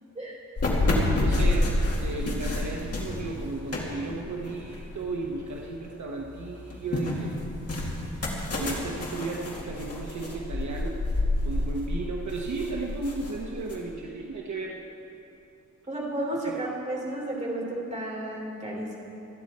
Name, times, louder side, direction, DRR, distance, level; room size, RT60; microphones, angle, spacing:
Floor walking, 0.6-5.7 6.1-13.7, left 2 dB, 50° left, 2.3 m, -29 dB
voice 1, 1.2-7.4 8.5-11.0 11.4-14.8 16.4-16.5, right 3 dB, 65° right, -1 dB, 1.1 m, -34 dB
voice 2, 15.9-19.0, right 1 dB, 20° right, -3 dB, 3.0 m, -32 dB
26.5 x 10.0 x 4.2 m, 2.9 s
wide cardioid pair, 175°, 32 cm